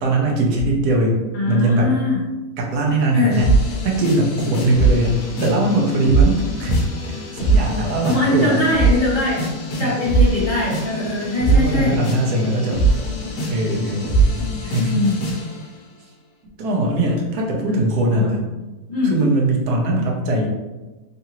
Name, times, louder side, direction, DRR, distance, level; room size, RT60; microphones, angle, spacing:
voice 1, 0.0-1.2 1.5-1.9 2.6-3.6 3.8-5.1 5.4-6.7 7.1-8.6 9.7-9.9 11.5-12.9 13.5-15.0 16.6-18.5 19.0-20.5, right 1 dB, 85° right, -1 dB, 1.3 m, -20 dB
voice 2, 1.3-2.2 3.1-3.4 8.0-9.5 9.8-12.0 14.8-15.2 17.7-17.8 18.1-18.3 18.9-19.1, left 2 dB, 40° left, -7 dB, 0.8 m, -21 dB
sound 1, 3.3-15.6, right 3 dB, 80° left, 1.3 m, -22 dB
3.7 x 2.5 x 2.9 m, 1.1 s
omnidirectional pair, 1.6 m